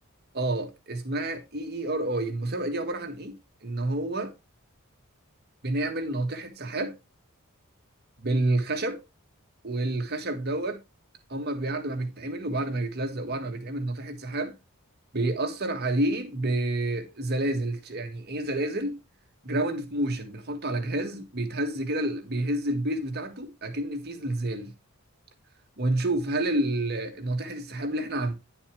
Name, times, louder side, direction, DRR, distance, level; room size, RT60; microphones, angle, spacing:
voice 1, 0.3-3.3 3.6-4.3 5.6-7.0 8.2-9.0 9.6-10.8 11.3-14.6 15.1-19.0 19.4-24.7 25.8-28.3, right 1 dB, 50° right, 1.6 m, -29 dB
10.0 x 6.9 x 3.3 m
head